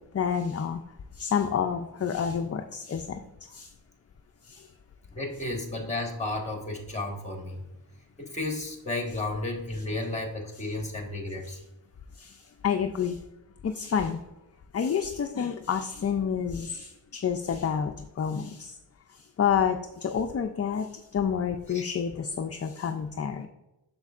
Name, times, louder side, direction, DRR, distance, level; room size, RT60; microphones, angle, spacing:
voice 1, 0.1-0.8 1.1-3.7 4.4-4.7 12.1-13.2 13.6-14.2 14.7-18.8 19.1-23.5, left 7 dB, 35° left, 6 dB, 0.4 m, -29 dB
voice 2, 5.1-7.6 8.2-11.6 21.7-21.8, left 2 dB, 15° left, 2 dB, 1.4 m, -33 dB
7.8 x 6.5 x 2.4 m, 0.95 s
wide cardioid pair, 110°, 44 cm